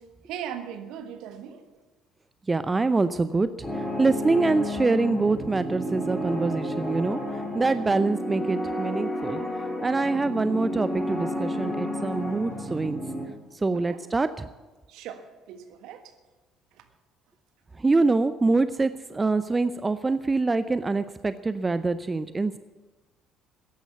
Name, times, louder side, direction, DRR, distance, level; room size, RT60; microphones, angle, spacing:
voice 1, 0.2-1.7 7.8-8.1 12.3-12.8 13.7-14.0 14.9-16.1 16.7-16.9, right 9 dB, 60° right, 8 dB, 1.5 m, -40 dB
voice 2, 2.5-3.5 4.0-7.2 7.5-9.4 9.8-13.0 13.6-14.4 17.8-22.6, right 3 dB, 20° right, 13 dB, 0.6 m, -25 dB
sound 1, 3.6-13.2, left 1 dB, 10° left, 4.1 m, -31 dB
14.5 x 10.5 x 8.2 m, 1.2 s
figure-of-eight pair, 50°, 0 cm